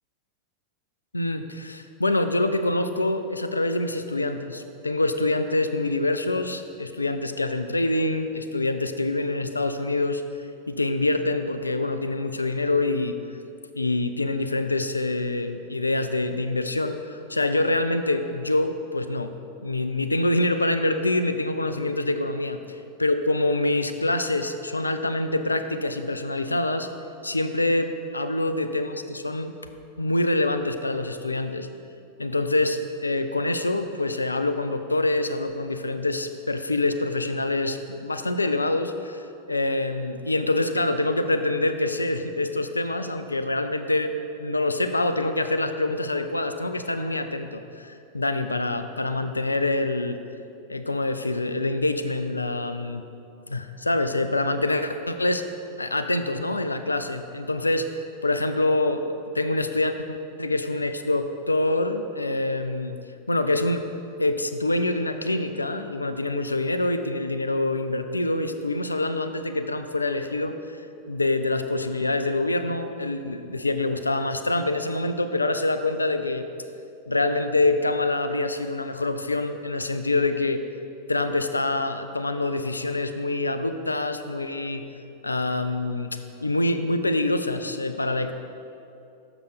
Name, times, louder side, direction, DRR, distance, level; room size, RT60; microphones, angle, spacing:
voice 1, 1.1-10.2 10.7-13.2 13.7-19.3 19.6-26.9 27.2-29.5 30.0-31.7 32.2-44.1 44.4-50.2 50.7-53.0 53.5-55.5 55.8-57.9 58.2-63.0 63.3-63.9 64.2-70.8 71.1-76.5 77.1-80.6 81.1-84.8 85.2-88.3, left 2 dB, 80° left, 9 dB, 0.3 m, -25 dB
6.6 x 5.9 x 5.0 m, 2.7 s
figure-of-eight pair, 90°, 0 cm